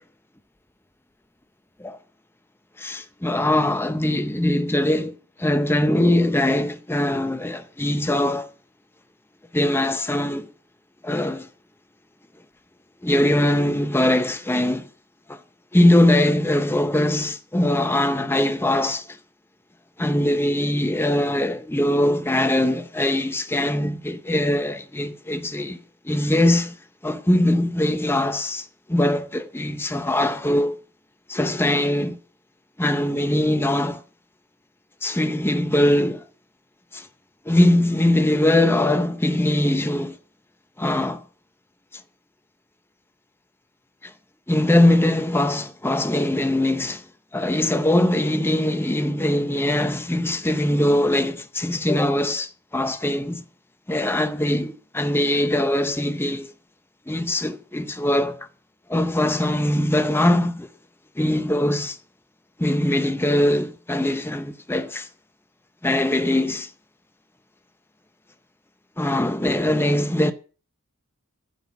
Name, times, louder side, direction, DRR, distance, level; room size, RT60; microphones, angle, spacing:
voice 1, 2.8-8.5 9.5-10.5 11.0-11.5 13.0-14.9 15.3-15.4 15.7-19.2 20.0-26.8 27.0-30.8 31.3-32.2 32.8-34.0 35.0-36.2 36.9-37.1 37.5-40.2 40.8-41.2 44.0-44.1 44.5-47.0 47.3-53.4 53.9-56.5 57.1-58.5 58.9-60.7 61.2-62.0 62.6-65.1 65.8-66.7 69.0-70.3, left 1 dB, 10° left, 0.7 m, -21 dB
14.5 x 5.9 x 7.1 m
head